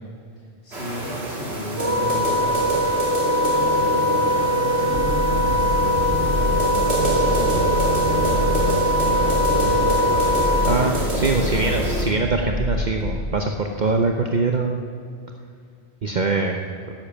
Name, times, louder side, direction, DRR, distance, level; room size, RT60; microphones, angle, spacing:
voice 1, 0.4-2.9 3.2-5.2 5.6-11.0, equal, 65° left, -4 dB, 2.5 m, -34 dB
sound 1, 0.7-12.0, equal, 85° right, 2.7 m, -27 dB
Wind instrument woodwind instrument, 1.8-10.8, equal, 15° right, 0.9 m, -22 dB
sound 2, 4.9-13.2, left 1 dB, 65° right, 2.3 m, -27 dB
voice 2, 10.7-14.8 16.0-16.6, right 3 dB, 50° right, 3 dB, 0.9 m, -23 dB
12.0 x 10.0 x 7.2 m, 2.3 s
omnidirectional pair, 1.1 m